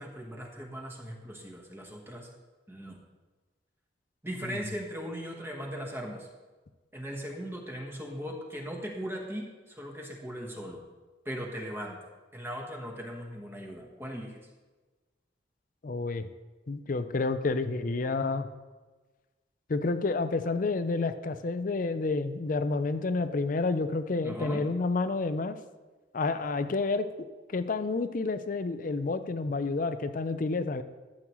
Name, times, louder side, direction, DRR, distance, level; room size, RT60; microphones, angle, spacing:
voice 1, 0.0-2.3 2.7-3.0 4.2-6.3 6.9-10.8 11.2-12.0 12.3-14.4 24.2-24.6, equal, 15° right, 0 dB, 1.1 m, -38 dB
voice 2, 15.8-16.3 16.7-18.5 19.7-25.6 26.1-27.1 27.5-30.8, left 3 dB, 45° left, 11 dB, 0.5 m, -29 dB
12.5 x 7.7 x 3.0 m, 1.3 s
head